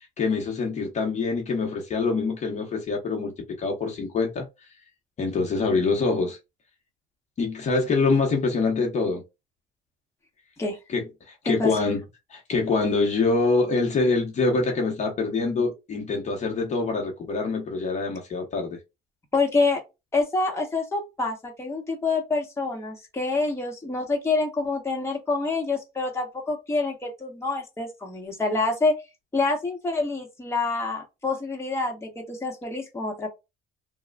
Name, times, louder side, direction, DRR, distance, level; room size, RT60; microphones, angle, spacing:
voice 1, 0.2-3.3 3.6-4.5 5.2-6.4 7.4-9.2 10.9-12.0 12.3-18.8, left 3 dB, 45° left, 1.0 m, -25 dB
voice 2, 19.3-19.8 20.1-29.0 29.3-33.3, left 3 dB, 15° left, 1.1 m, -27 dB
3.1 x 2.3 x 2.3 m
cardioid pair, 110°, 17 cm